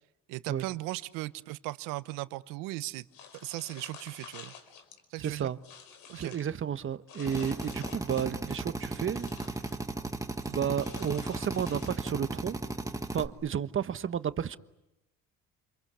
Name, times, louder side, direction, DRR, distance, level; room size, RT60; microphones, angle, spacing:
voice 1, 0.3-3.0 3.4-4.5 5.1-5.5 6.1-6.4 10.4-10.6, right 19 dB, 80° right, 1.1 m, -37 dB
sound 1, 3.1-5.0 5.4-6.5 7.1-8.4 8.8-9.8 10.8-12.3, left 7 dB, 80° left, 4.9 m, -50 dB
voice 2, 5.2-5.6 6.1-9.3 10.5-12.6 13.1-14.6, right 8 dB, 40° right, 1.2 m, -32 dB
Drill, 7.3-13.3, right 2 dB, 10° right, 1.7 m, -36 dB
29.5 x 23.0 x 8.3 m
supercardioid pair, 85°, 33 cm